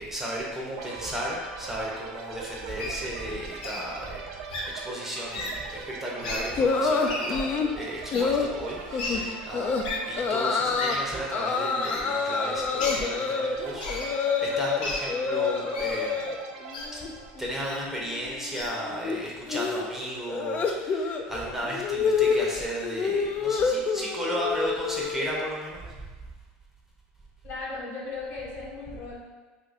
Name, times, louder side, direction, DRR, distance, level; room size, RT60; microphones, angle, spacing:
voice 1, 0.0-4.2 4.7-16.3 16.9-17.0 17.4-26.1, right 1 dB, 5° right, -4 dB, 0.7 m, -34 dB
sound 1, 0.8-18.4, right 5 dB, 75° right, 0.4 m, -42 dB
Wild animals, 2.8-3.0 3.6-3.8 4.5-4.6 5.3-5.5 6.2-6.4 7.0-7.4 8.1-8.2 9.0-9.1 9.8-10.0 10.8-11.0 11.8-12.0 12.8-13.0 13.8-14.1 14.8-15.0 15.7-16.0 16.7-16.9 17.6-17.8 18.5-18.7, left 2 dB, 90° left, 0.6 m, -33 dB
sound 2, 6.6-7.7 8.1-8.5 8.9-9.2 9.5-9.8 10.2-11.0 11.3-14.8 15.1-16.4 16.7-17.1 17.4-25.5, left 5 dB, 35° left, 0.3 m, -28 dB
voice 2, 27.4-29.2, left 3 dB, 55° left, -4 dB, 1.1 m, -36 dB
2.6 x 2.5 x 3.9 m, 1.3 s
supercardioid pair, 105°, 4 cm